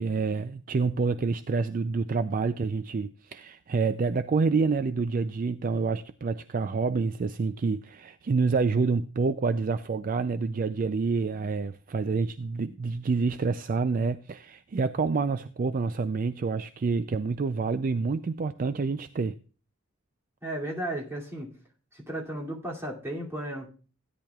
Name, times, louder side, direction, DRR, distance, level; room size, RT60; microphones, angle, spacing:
voice 1, 0.0-19.4, right 4 dB, 40° right, 0.4 m, -28 dB
voice 2, 20.4-21.5 21.9-23.7, right 1 dB, 10° right, 2.5 m, -34 dB
16.5 x 10.5 x 2.3 m
head